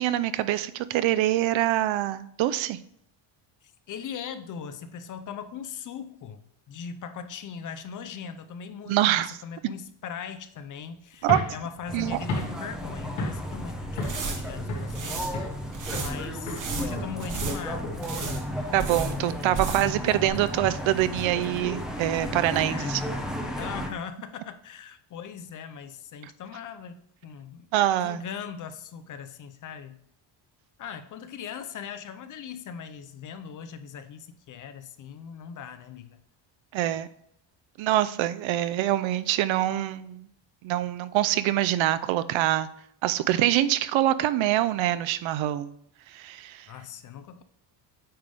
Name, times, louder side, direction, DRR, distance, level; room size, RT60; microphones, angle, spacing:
voice 1, 0.0-2.8 8.9-9.4 11.2-11.4 11.9-12.2 18.7-23.0 27.7-28.2 36.7-37.1 37.8-40.3 40.6-42.7 43.0-45.7 46.1-46.7, right 13 dB, 75° right, 15 dB, 0.6 m, -25 dB
voice 2, 3.6-15.3 16.0-18.1 20.0-20.1 22.5-23.2 23.6-27.7 28.0-30.0 30.8-36.2 46.7-47.4, left 7 dB, 40° left, 11 dB, 0.5 m, -40 dB
sound 1, 11.2-13.6 14.0-14.3 14.7-15.6 15.9-16.2 16.5-19.6, left 2 dB, 80° left, 3.0 m, -35 dB
sound 2, 11.9-23.9, equal, ahead, 0.7 m, -34 dB
sound 3, 13.9-20.0 20.3-20.4, right 4 dB, 40° right, 1.2 m, -35 dB
8.8 x 3.4 x 5.2 m, 0.69 s
cardioid pair, 165°, 47 cm